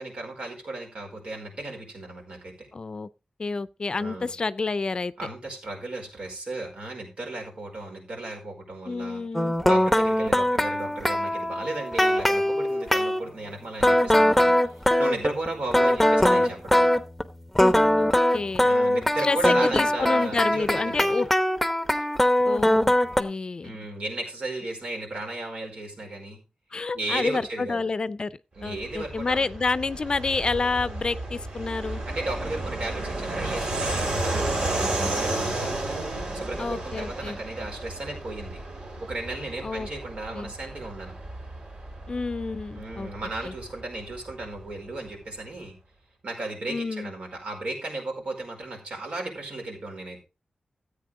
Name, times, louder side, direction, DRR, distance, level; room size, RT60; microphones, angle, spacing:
voice 1, 0.0-2.7 3.9-4.3 5.2-9.2 9.6-14.5 15.0-16.9 18.6-21.1 23.6-26.4 26.9-27.9 28.6-29.5 32.1-35.8 36.3-38.6 39.0-41.1 42.7-45.8 46.2-50.2, right 2 dB, 75° right, 4.9 m, -35 dB
voice 2, 2.7-3.1 3.4-5.1 8.9-9.6 18.0-18.7 19.2-21.3 22.4-23.7 26.7-28.3 28.6-32.0 36.6-37.4 39.6-39.9 40.3-40.5 42.1-43.1 43.4-43.5 46.7-47.1, left 4 dB, 45° left, 0.5 m, -29 dB
sound 1, 9.3-13.2 13.8-17.2 17.5-23.2, left 1 dB, 5° left, 0.9 m, -21 dB
Fixed-wing aircraft airplane, 28.6-44.8, right 2 dB, 55° right, 4.1 m, -32 dB
14.0 x 8.5 x 3.7 m
wide cardioid pair, 100°, 2 cm